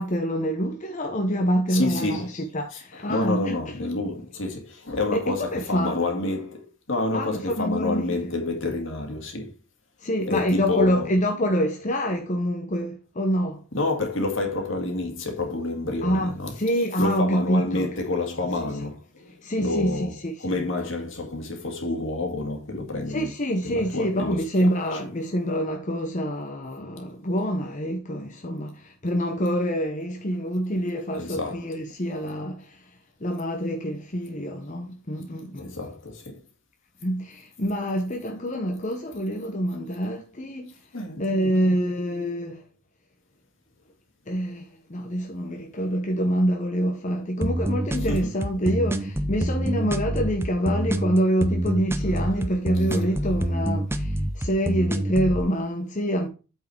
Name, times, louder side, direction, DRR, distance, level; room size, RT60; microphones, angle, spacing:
voice 1, 0.0-3.6 5.1-5.9 7.1-8.0 10.0-13.6 16.0-16.3 16.6-17.9 19.4-20.0 20.2-20.6 23.1-32.8 33.2-35.7 37.0-40.7 41.2-42.6 44.3-56.3, equal, 35° left, 0.9 m, -26 dB
voice 2, 1.7-2.3 2.7-9.6 10.3-11.1 13.7-16.6 17.0-23.3 23.6-25.0 31.2-31.7 35.6-36.4 40.9-41.8 48.1-48.3 52.9-53.1, left 2 dB, 65° left, 2.1 m, -29 dB
sound 1, 47.4-55.4, right 1 dB, 10° right, 0.6 m, -26 dB
8.5 x 4.7 x 4.5 m
head